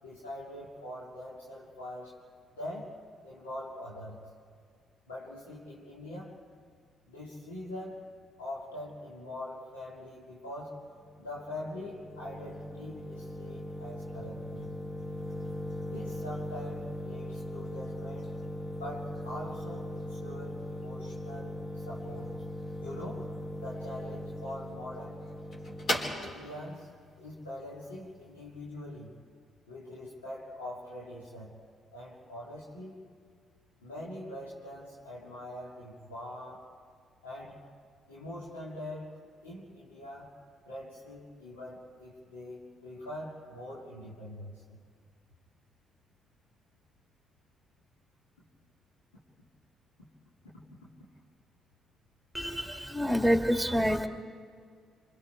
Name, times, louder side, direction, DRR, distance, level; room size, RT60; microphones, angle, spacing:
voice 1, 0.0-2.2 2.5-3.0 3.2-4.3 5.1-6.4 7.1-8.1 8.4-10.8 11.2-14.7 15.8-18.3 18.7-22.4 22.8-25.2 26.2-26.9 27.2-29.2 29.7-31.6 31.9-33.0 33.8-36.7 37.2-37.6 38.1-40.4 40.7-44.8, left 1 dB, 90° left, -6 dB, 2.6 m, -43 dB
sound 1, 10.8-28.4, left 1 dB, 50° left, 4.1 m, -39 dB
voice 2, 52.3-54.1, equal, 5° left, 4 dB, 2.3 m, -27 dB
26.5 x 26.5 x 4.6 m, 2.1 s
hypercardioid pair, 45°, 0 cm